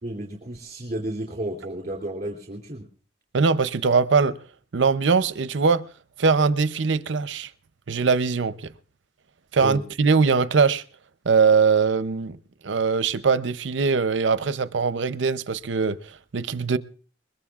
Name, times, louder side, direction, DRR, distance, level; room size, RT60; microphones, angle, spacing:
voice 1, 0.0-2.9 9.6-9.8, right 1 dB, 40° right, 2.8 m, -32 dB
voice 2, 3.3-4.4 4.7-5.9 6.2-7.5 7.9-8.7 9.5-10.8 11.3-12.4 12.6-16.8, right 5 dB, 80° right, 0.6 m, -21 dB
21.5 x 21.5 x 2.4 m
head